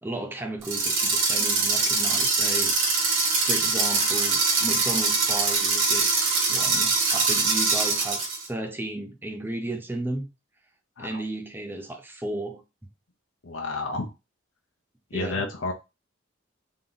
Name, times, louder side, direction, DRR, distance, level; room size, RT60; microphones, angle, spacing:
voice 1, 0.0-2.7 3.4-10.3 11.0-12.6 15.1-15.5, right 2 dB, 10° right, 0.6 m, -34 dB
sound 1, 0.6-8.4, right 4 dB, 70° right, 1.8 m, -23 dB
voice 2, 13.4-14.1 15.1-15.7, left 3 dB, 75° left, 0.7 m, -30 dB
3.7 x 2.8 x 3.9 m
head